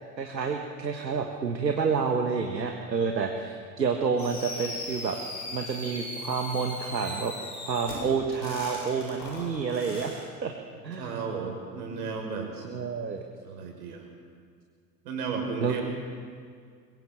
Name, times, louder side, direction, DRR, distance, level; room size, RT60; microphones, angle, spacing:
voice 1, 0.2-5.2 5.5-7.4 7.6-10.5 10.8-11.2 12.6-13.2 15.6-15.8, right 5 dB, 80° right, 4 dB, 1.6 m, -29 dB
Fireworks, 4.2-10.2, left 2 dB, 75° left, 7.3 m, -39 dB
voice 2, 11.0-12.5 13.4-14.1 15.0-15.8, right 5 dB, 65° right, 3 dB, 5.5 m, -34 dB
23.0 x 22.0 x 7.4 m, 2.1 s
figure-of-eight pair, 80°, 50 cm